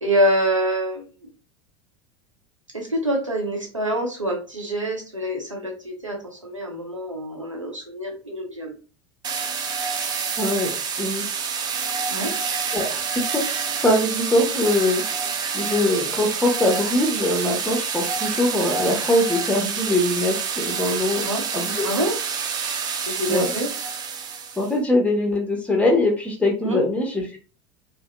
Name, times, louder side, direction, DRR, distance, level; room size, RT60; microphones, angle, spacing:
voice 1, 0.0-1.1 2.7-8.8 12.1-12.3 21.2-21.4 21.8-22.2 23.1-23.7 26.6-26.8, right 1 dB, 90° right, 0 dB, 0.7 m, -25 dB
sound 1, 9.2-24.7, right 6 dB, 25° right, 0.4 m, -27 dB
voice 2, 10.4-10.7 11.0-11.5 12.7-13.0 13.3-15.0 15.5-21.3 21.5-21.9 23.3-23.5 24.6-27.4, left 1 dB, 10° left, 1 dB, 0.8 m, -22 dB
2.6 x 2.1 x 2.2 m, 0.34 s
figure-of-eight pair, 80°, 16 cm